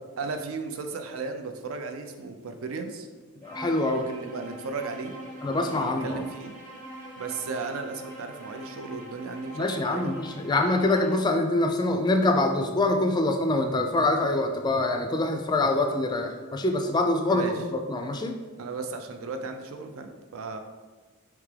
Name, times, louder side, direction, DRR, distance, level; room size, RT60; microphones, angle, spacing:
voice 1, 0.2-3.1 3.9-5.1 5.7-6.5 7.2-10.1 17.3-17.5 18.6-20.6, right 4 dB, 70° right, 6 dB, 0.5 m, -35 dB
voice 2, 3.4-4.0 5.4-6.2 9.5-18.4, left 2 dB, 20° left, 5 dB, 0.3 m, -25 dB
Bowed string instrument, 3.4-11.3, right 1 dB, 35° right, 0.9 m, -43 dB
4.6 x 3.5 x 3.3 m, 1.4 s
head